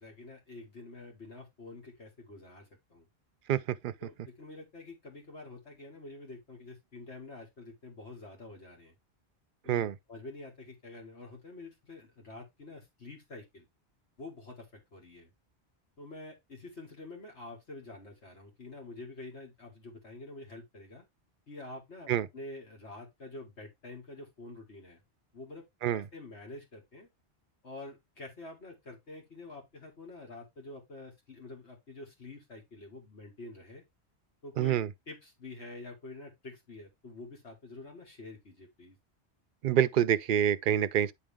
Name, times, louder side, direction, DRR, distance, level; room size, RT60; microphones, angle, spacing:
voice 1, 0.0-3.1 4.0-8.9 9.6-13.7 14.2-15.3 16.0-21.0 21.5-25.0 25.3-27.1 27.6-33.8 34.4-34.8 35.1-39.0, left 2 dB, 80° left, 2.6 m, -47 dB
voice 2, 3.5-3.9 9.7-10.0 22.1-22.3 25.8-26.0 34.6-34.9 39.6-41.1, right 10 dB, 60° right, 0.6 m, -27 dB
9.7 x 3.7 x 3.5 m
omnidirectional pair, 1.1 m